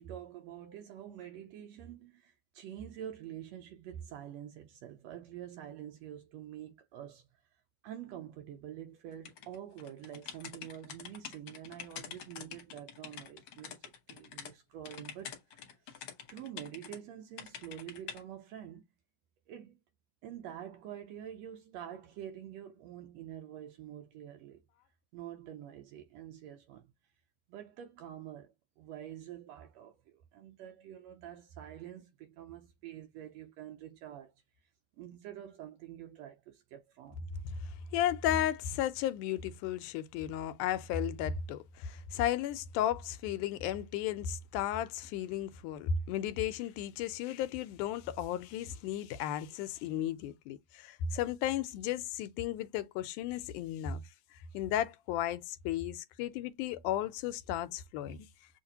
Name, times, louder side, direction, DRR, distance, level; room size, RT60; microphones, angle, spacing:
voice 1, 0.0-7.3 7.8-15.4 15.9-16.0 16.3-18.8 19.5-19.8 20.2-24.6 25.1-26.9 27.5-34.3 35.0-37.4, right 10 dB, 75° right, 1.6 m, -47 dB
sound 1, 9.3-14.5 14.9-17.0 17.4-18.2, left 8 dB, 65° left, 1.4 m, -46 dB
voice 2, 37.5-54.0 54.5-58.3, left 10 dB, 85° left, 2.1 m, -34 dB
6.4 x 2.5 x 2.8 m
omnidirectional pair, 3.5 m